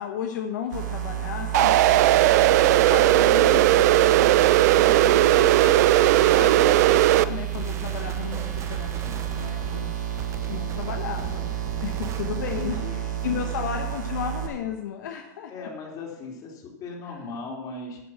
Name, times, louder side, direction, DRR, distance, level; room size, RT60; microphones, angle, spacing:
voice 1, 0.0-9.9 10.5-11.5 11.8-15.7 17.0-17.3, left 8 dB, 75° left, 4 dB, 1.3 m, -34 dB
sound 1, 0.7-14.5, right 11 dB, 85° right, 2.8 m, -31 dB
sound 2, 1.5-7.2, right 14 dB, 65° right, 0.6 m, -17 dB
Unknown and very loud sound..., 7.5-13.0, right 8 dB, 30° right, 0.8 m, -39 dB
voice 2, 12.3-13.4 15.5-18.0, left 3 dB, 40° left, 0 dB, 3.9 m, -38 dB
11.5 x 9.6 x 5.9 m, 0.92 s
hypercardioid pair, 110°, 10 cm